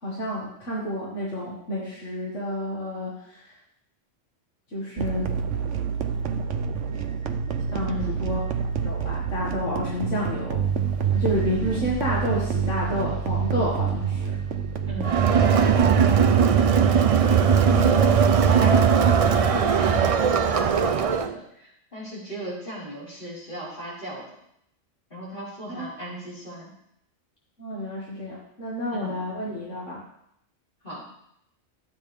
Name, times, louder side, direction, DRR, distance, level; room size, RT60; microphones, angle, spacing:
voice 1, 0.0-3.1 4.7-5.2 7.7-8.4 8.8-10.6 11.1-14.3 16.8-16.9 25.8-25.9 27.6-30.0, equal, 80° left, -6 dB, 2.4 m, -30 dB
Cinematic Pulsing Atmosphere, 5.0-20.1, right 7 dB, 80° right, 1.1 m, -28 dB
voice 2, 14.8-15.2 15.5-16.1 17.7-18.0 18.3-24.2 25.1-26.7 28.9-29.2 30.8-31.0, equal, 45° left, -8 dB, 5.0 m, -36 dB
Crowd, 15.0-21.3, right 7 dB, 50° right, 0.4 m, -19 dB
13.5 x 8.6 x 3.5 m, 0.76 s
omnidirectional pair, 1.2 m